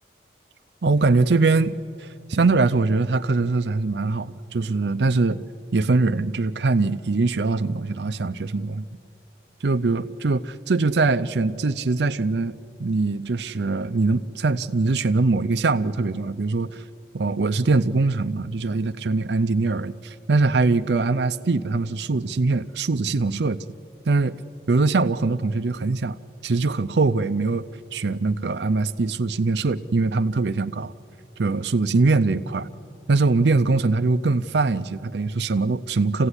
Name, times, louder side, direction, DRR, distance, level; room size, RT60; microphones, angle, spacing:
voice 1, 0.8-5.4 5.7-8.8 9.6-16.8 17.1-23.6 24.1-24.3 24.7-26.2 26.4-30.9 31.4-32.7 33.1-36.3, right 3 dB, 80° right, 10 dB, 0.6 m, -22 dB
26.0 x 16.5 x 9.8 m, 2.4 s
head